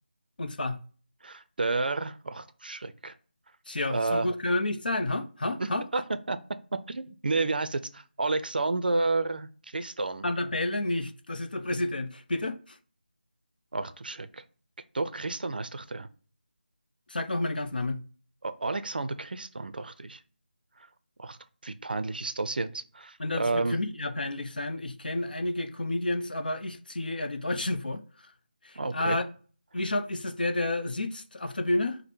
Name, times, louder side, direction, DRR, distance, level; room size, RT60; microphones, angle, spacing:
voice 1, 0.4-0.8 3.7-5.8 10.2-12.8 17.1-18.0 23.2-28.0 28.6-29.3 29.7-32.0, left 2 dB, 55° left, 0.6 m, -30 dB
voice 2, 1.2-3.1 3.9-4.3 5.6-6.4 6.9-10.3 13.7-14.4 14.9-16.1 18.4-20.2 21.2-21.4 21.6-23.8 28.8-29.2, right 3 dB, 55° right, 0.5 m, -31 dB
5.1 x 2.1 x 4.4 m
figure-of-eight pair, 165°, 6 cm